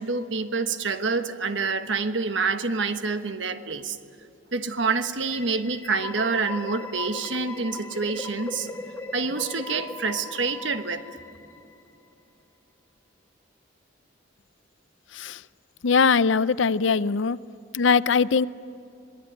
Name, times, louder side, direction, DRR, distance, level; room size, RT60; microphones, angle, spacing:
voice 1, 0.0-4.0 4.5-8.7 9.1-11.0, right 4 dB, 65° right, 9 dB, 1.3 m, -27 dB
sound 1, 5.2-12.0, left 3 dB, 10° left, 1.7 m, -38 dB
voice 2, 15.8-17.4 17.7-18.5, left 5 dB, 70° left, 17 dB, 0.6 m, -21 dB
26.5 x 20.5 x 9.2 m, 2.7 s
head